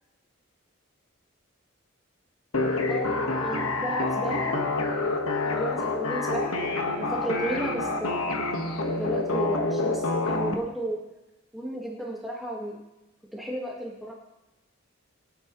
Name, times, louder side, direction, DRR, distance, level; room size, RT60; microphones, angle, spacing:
sound 1, 2.5-10.5, left 2 dB, 80° left, 1.4 m, -27 dB
voice 1, 2.9-4.6 5.4-6.6 6.9-8.3 9.0-11.0 11.5-12.8 13.3-14.1, right 1 dB, ahead, -4 dB, 1.6 m, -34 dB
24.5 x 8.7 x 3.1 m, 1.0 s
head